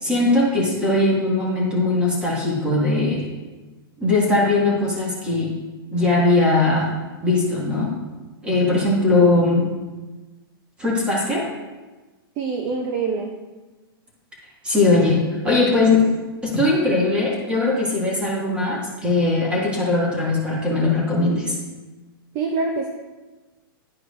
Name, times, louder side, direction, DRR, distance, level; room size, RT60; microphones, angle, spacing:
voice 1, 0.0-3.2 4.0-5.5 5.9-6.9 7.2-7.9 8.4-9.7 10.8-11.4 14.6-16.1 16.4-21.5, left 2 dB, 10° right, -5 dB, 1.9 m, -20 dB
voice 2, 12.4-13.4 22.3-22.9, right 4 dB, 30° right, 3 dB, 0.6 m, -25 dB
11.5 x 4.7 x 2.6 m, 1.2 s
hypercardioid pair, 155°, 12 cm